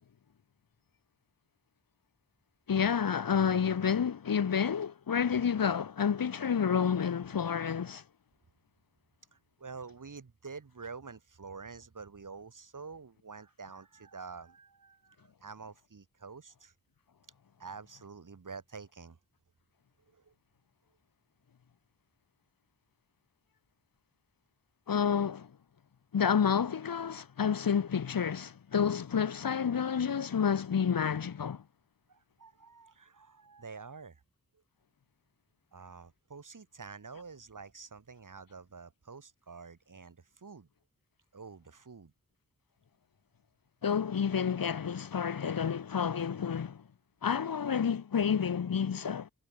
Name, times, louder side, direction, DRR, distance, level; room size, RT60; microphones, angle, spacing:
voice 1, 2.7-8.0 24.9-25.5 26.1-31.6 43.8-46.8 47.2-49.3, left 7 dB, 75° left, 1.4 m, -29 dB
voice 2, 9.3-16.7 17.6-19.2 20.1-20.3 32.1-34.2 35.7-40.7 41.3-42.1, right 5 dB, 60° right, 7.7 m, -48 dB
wide cardioid pair, 110°, 35 cm